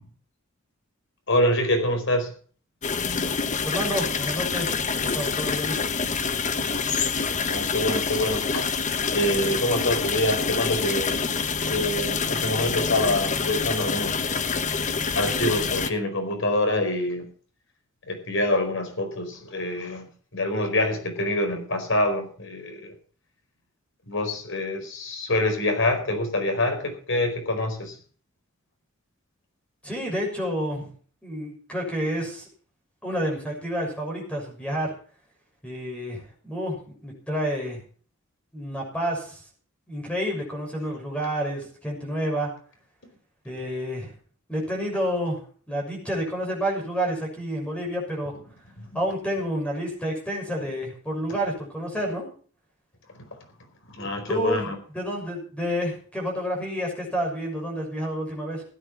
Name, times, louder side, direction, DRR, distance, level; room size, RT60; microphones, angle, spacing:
voice 1, 1.3-2.3 6.7-6.9 7.5-8.7 9.1-11.2 11.7-14.3 15.1-17.3 18.1-22.9 24.1-28.0 48.8-48.9 53.9-54.8, left 1 dB, 60° left, 5 dB, 4.7 m, -26 dB
sound 1, 2.8-15.9, left 5 dB, 35° left, 1.1 m, -26 dB
voice 2, 3.6-5.8 29.8-30.9 31.2-32.5 33.0-34.9 35.6-37.8 38.5-39.4 39.9-42.5 43.4-44.1 44.5-45.4 45.7-48.3 48.9-52.3 54.3-54.7 54.9-58.6, equal, 5° left, 0 dB, 6.4 m, -29 dB
16.0 x 9.9 x 5.8 m, 0.43 s
head